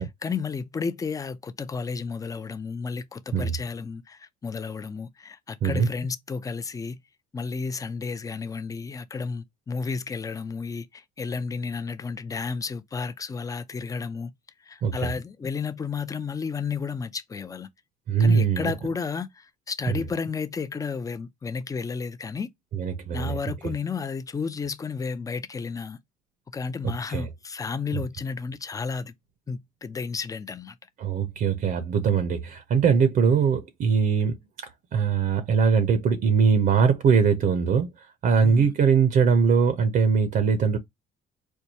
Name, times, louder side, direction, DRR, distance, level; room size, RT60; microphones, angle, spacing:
voice 1, 0.0-7.0 7.3-14.3 14.6-17.7 18.2-22.5 23.1-26.0 26.5-29.1 29.5-30.8 38.3-38.7, left 5 dB, 20° left, 0.5 m, -32 dB
voice 2, 18.1-18.7 19.9-20.0 22.7-23.4 23.6-23.7 26.8-27.3 27.9-28.0 31.0-34.4 34.9-37.9 38.2-40.8, right 6 dB, 55° right, 0.7 m, -21 dB
4.5 x 2.3 x 2.7 m
cardioid pair, 110°, 17 cm